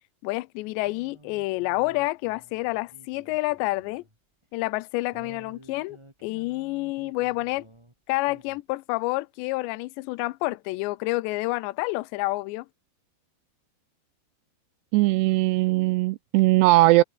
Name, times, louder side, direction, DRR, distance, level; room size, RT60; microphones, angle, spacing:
voice 1, 0.2-4.0 4.5-7.7 8.1-12.7, left 21 dB, 80° left, 2.8 m, -28 dB
sound 1, 0.8-4.2 4.4-4.5 5.1-7.9 8.2-8.6, right 1 dB, 5° right, 3.2 m, -53 dB
voice 2, 14.9-17.0, right 19 dB, 80° right, 2.5 m, -19 dB
omnidirectional pair, 5.2 m